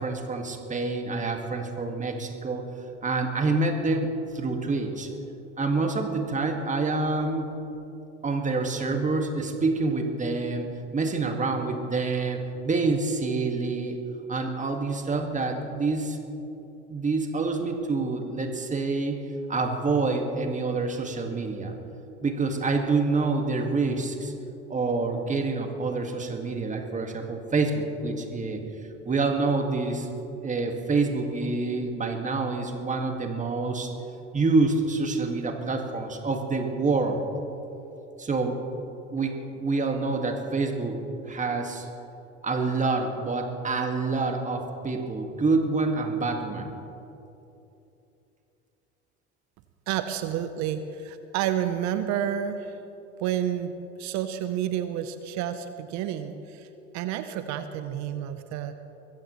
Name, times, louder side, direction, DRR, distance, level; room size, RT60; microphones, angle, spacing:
voice 1, 0.0-2.6 3.0-5.1 5.6-7.5 8.2-10.7 10.9-14.0 14.3-16.2 16.9-19.2 19.5-21.8 22.2-24.3 24.7-28.6 29.1-30.1 30.4-33.9 34.3-37.2 38.2-38.6 39.1-39.3 39.6-41.0 41.3-41.9 42.4-46.8, right 3 dB, 20° right, 3 dB, 1.9 m, -27 dB
voice 2, 49.9-52.8 53.2-56.7 56.9-58.7, right 10 dB, 50° right, 10 dB, 0.9 m, -30 dB
23.0 x 15.5 x 3.1 m, 2.9 s
hypercardioid pair, 75°, 35 cm